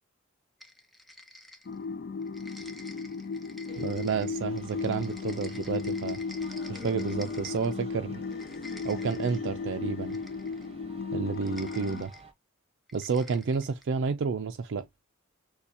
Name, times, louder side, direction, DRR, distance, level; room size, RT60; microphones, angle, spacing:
sound 1, 0.6-1.9 2.2-7.8 8.2-9.5 10.1-10.7 11.3-12.2 12.9-13.9, left 1 dB, ahead, 0.7 m, -50 dB
sound 2, 1.7-12.0, left 4 dB, 45° left, 0.4 m, -35 dB
sound 3, 3.7-12.3, right 1 dB, 30° right, 1.0 m, -51 dB
voice 1, 3.8-6.2 6.7-8.2 8.8-10.2 11.1-12.1 12.9-14.9, right 5 dB, 60° right, 0.4 m, -30 dB
6.7 x 2.3 x 2.7 m
head